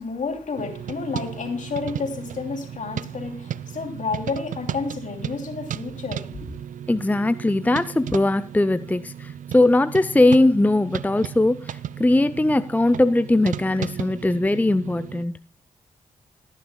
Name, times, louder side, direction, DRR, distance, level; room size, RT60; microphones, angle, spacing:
voice 1, 0.0-6.5, left 4 dB, 60° left, 2.8 m, -30 dB
sound 1, 0.6-15.3, right 9 dB, 65° right, 0.4 m, -35 dB
voice 2, 6.9-15.3, left 2 dB, 10° left, 0.5 m, -20 dB
18.0 x 10.5 x 2.2 m
supercardioid pair, 40°, 15 cm